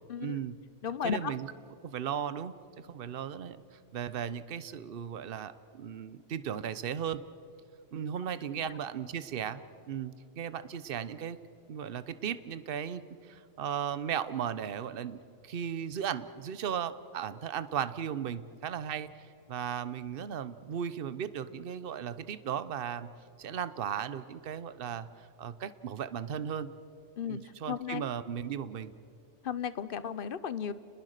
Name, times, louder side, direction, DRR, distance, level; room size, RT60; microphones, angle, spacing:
voice 1, 0.2-0.6 1.0-1.5 1.8-3.6 3.9-7.2 7.9-11.4 11.7-23.1 23.4-26.7 27.3-28.9, right 8 dB, 55° right, 14 dB, 0.9 m, -36 dB
voice 2, 0.8-1.3 27.2-28.0 29.4-30.7, left 7 dB, 55° left, 15 dB, 0.9 m, -34 dB
30.0 x 21.0 x 6.6 m, 2.5 s
omnidirectional pair, 1.2 m